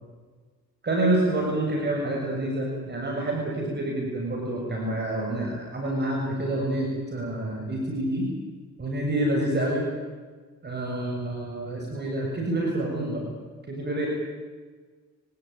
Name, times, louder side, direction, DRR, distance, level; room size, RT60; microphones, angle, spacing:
voice 1, 0.8-8.3 8.8-9.9 10.6-13.2 13.7-14.1, right 1 dB, 35° right, 0 dB, 6.9 m, -27 dB
25.5 x 18.0 x 9.3 m, 1.4 s
cardioid pair, 90°, 30 cm